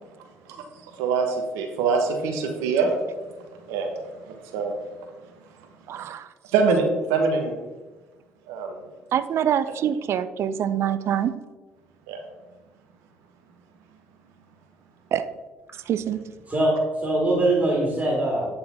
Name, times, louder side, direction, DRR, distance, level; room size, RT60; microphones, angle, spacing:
voice 1, 1.0-2.9 3.7-3.9 4.3-4.8 6.5-7.6 8.5-8.8 12.1-12.2, right 4 dB, 75° right, 3 dB, 1.0 m, -24 dB
voice 2, 5.9-6.3 9.1-11.3 15.1-15.3 15.9-16.2, right 9 dB, 55° right, 12 dB, 0.5 m, -25 dB
voice 3, 16.5-18.5, right 1 dB, 25° right, -3 dB, 2.3 m, -22 dB
8.8 x 3.9 x 4.1 m, 1.2 s
hypercardioid pair, 55°, 5 cm